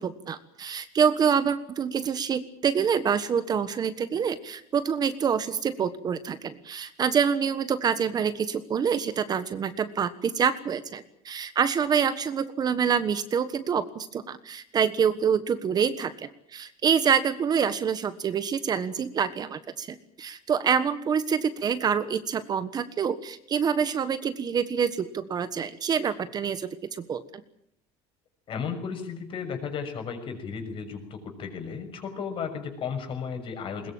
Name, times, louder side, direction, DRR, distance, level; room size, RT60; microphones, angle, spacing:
voice 1, 0.0-27.2, right 7 dB, 30° right, 12 dB, 1.3 m, -26 dB
voice 2, 28.5-33.9, left 6 dB, 40° left, 6 dB, 6.3 m, -34 dB
21.5 x 21.0 x 8.8 m, 0.74 s
cardioid pair, 135°, 13 cm